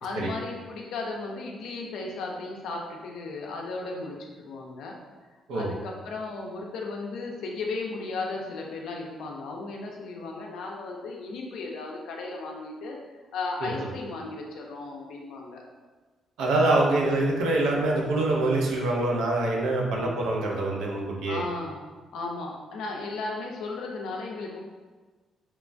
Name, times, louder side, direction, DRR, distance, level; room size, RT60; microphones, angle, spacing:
voice 1, 0.0-4.9 5.3-13.0 13.3-15.6 20.0-20.2 21.3-21.8 22.1-24.6, left 3 dB, 80° left, 0 dB, 0.4 m, -35 dB
voice 2, 16.4-21.4, right 2 dB, 90° right, -1 dB, 0.4 m, -25 dB
3.0 x 2.1 x 2.5 m, 1.3 s
cardioid pair, 90°, 0 cm